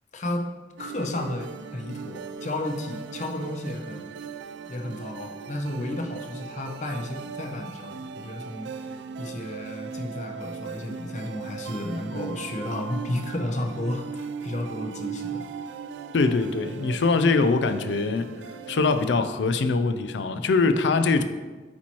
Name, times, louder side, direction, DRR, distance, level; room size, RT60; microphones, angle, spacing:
voice 1, 0.1-0.5 0.8-4.1 4.7-8.9 9.2-15.5, left 1 dB, 40° left, 3 dB, 0.6 m, -32 dB
sound 1, 0.8-19.2, right 6 dB, 80° right, 0.3 m, -38 dB
voice 2, 16.1-18.3 18.7-21.2, left 3 dB, 80° left, 10 dB, 0.4 m, -23 dB
8.4 x 4.5 x 2.9 m, 1.3 s
head